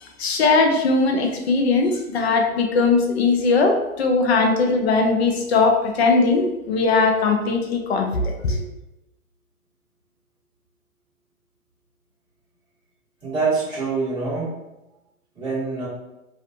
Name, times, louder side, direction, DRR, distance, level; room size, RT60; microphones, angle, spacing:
voice 1, 0.0-8.6, left 3 dB, 45° left, 3 dB, 0.5 m, -20 dB
voice 2, 13.2-14.5 15.3-15.9, right 4 dB, 10° right, -11 dB, 1.3 m, -25 dB
2.5 x 2.4 x 2.6 m, 0.96 s
hypercardioid pair, 135°, 43 cm